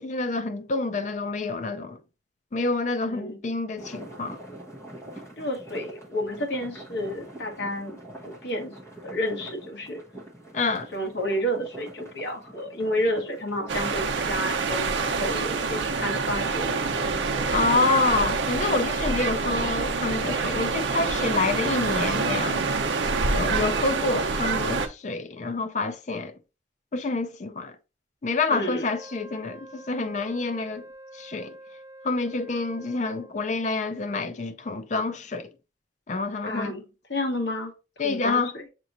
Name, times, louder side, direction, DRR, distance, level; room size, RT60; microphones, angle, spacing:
voice 1, 0.0-2.0 2.5-4.4 10.5-10.9 17.5-22.6 23.0-26.3 26.9-27.8 28.2-30.9 31.1-31.6 32.0-35.5 36.1-36.7 38.0-38.5, left 3 dB, 40° left, 0.4 m, -27 dB
voice 2, 3.1-3.4 5.4-8.0 8.3-8.8 9.0-10.0 10.9-17.1 28.5-28.8 36.4-36.8 37.1-37.7 38.0-38.6, equal, 65° left, 1.2 m, -30 dB
sound 1, 3.8-21.8, right 1 dB, 15° left, 1.1 m, -45 dB
sound 2, 13.7-24.9, right 4 dB, 80° right, 0.6 m, -26 dB
Wind instrument woodwind instrument, 28.8-33.6, right 1 dB, 20° right, 0.4 m, -46 dB
6.7 x 2.9 x 2.5 m
head